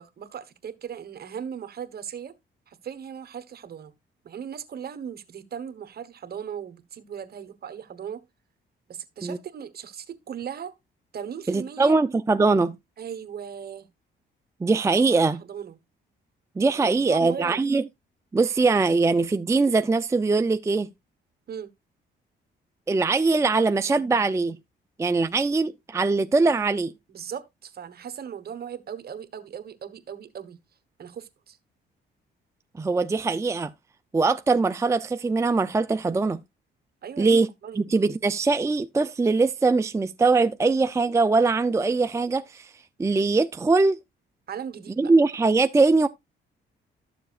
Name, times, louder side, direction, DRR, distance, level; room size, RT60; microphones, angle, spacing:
voice 1, 0.0-2.3 2.7-3.9 4.2-8.2 8.9-10.7 11.1-12.0 13.0-13.9 14.9-15.8 16.8-17.6 21.5-21.7 27.1-30.6 31.0-31.6 37.0-37.8 44.5-45.1, right 8 dB, 50° right, 1.1 m, -38 dB
voice 2, 11.5-12.7 14.6-15.4 16.6-17.8 18.3-20.9 22.9-24.6 25.0-26.9 32.8-33.7 34.1-36.4 37.2-37.5 37.8-42.7 43.0-44.0 45.0-46.1, right 3 dB, 15° right, 0.4 m, -22 dB
12.5 x 7.0 x 2.4 m
cardioid pair, 90°, 20 cm